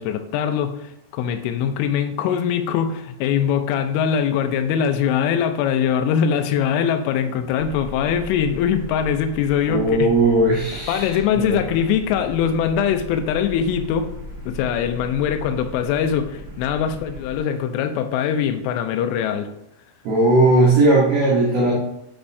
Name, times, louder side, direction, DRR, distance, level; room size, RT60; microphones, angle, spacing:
voice 1, 0.0-10.1 10.9-14.1 14.5-19.5, left 8 dB, 90° left, 8 dB, 3.2 m, -22 dB
sound 1, 7.6-17.4, left 1 dB, 25° right, 1.5 m, -37 dB
voice 2, 9.7-11.6 20.0-21.7, right 2 dB, 90° right, -3 dB, 1.8 m, -17 dB
10.0 x 5.4 x 2.6 m, 0.82 s
omnidirectional pair, 5.5 m